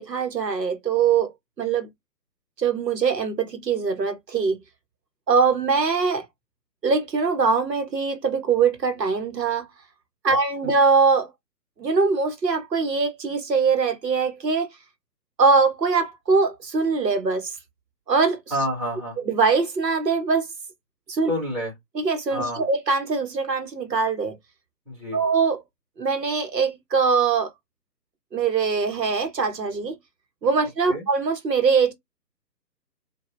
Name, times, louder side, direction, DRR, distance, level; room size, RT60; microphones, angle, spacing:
voice 1, 0.0-1.3 1.6-1.9 2.6-4.6 5.3-6.2 6.8-9.7 10.2-11.3 11.8-14.7 15.4-17.5 18.1-18.4 19.2-20.5 21.1-21.3 21.9-24.4 25.1-25.6 26.0-27.5 28.3-29.9 30.4-31.9, right 5 dB, 75° right, 1.3 m, -22 dB
voice 2, 18.5-19.2 21.3-21.7 22.3-22.6 24.9-25.2 30.9-31.1, equal, 5° right, 2.1 m, -28 dB
5.1 x 2.7 x 2.6 m
figure-of-eight pair, 145°, 50 cm